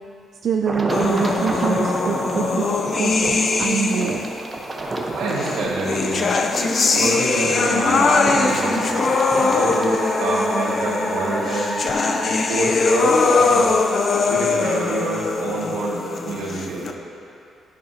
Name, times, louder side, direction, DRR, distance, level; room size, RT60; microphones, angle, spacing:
voice 1, 0.4-2.7 3.0-4.3, right 7 dB, 60° right, 3 dB, 0.3 m, -24 dB
sound 1, 0.6-10.5, right 1 dB, 25° right, 0.9 m, -30 dB
sound 2, 0.9-4.4 5.4-16.9, left 4 dB, 50° left, 0.5 m, -21 dB
voice 2, 5.2-6.3 6.9-8.9 9.4-11.8 12.5-13.7 14.3-16.0 16.3-16.9, right 2 dB, 85° right, -5 dB, 1.8 m, -27 dB
Musical instrument, 6.5-13.4, equal, 10° left, 1.3 m, -31 dB
11.0 x 5.9 x 2.8 m, 2.7 s
cardioid pair, 80°, 0 cm